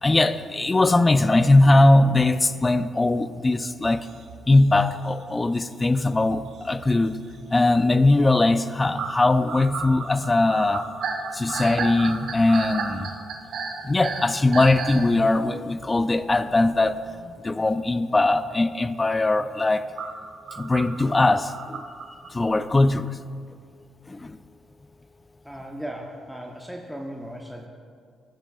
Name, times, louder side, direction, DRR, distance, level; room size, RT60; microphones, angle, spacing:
voice 1, 0.0-4.1 4.5-7.2 7.5-10.8 11.3-13.1 13.8-19.9 20.6-21.8 22.3-23.1 24.1-24.4, left 2 dB, 20° left, 12 dB, 0.3 m, -20 dB
sound 1, 3.8-5.5 5.8-7.4 7.8-8.0 8.3-8.4 9.0-15.1 15.8-15.9 17.8-17.9 20.0-22.3, right 5 dB, 75° right, 1.0 m, -33 dB
voice 2, 25.4-27.7, equal, ahead, 0 dB, 0.8 m, -37 dB
16.0 x 7.4 x 2.4 m, 2.1 s
cardioid pair, 90°, 0 cm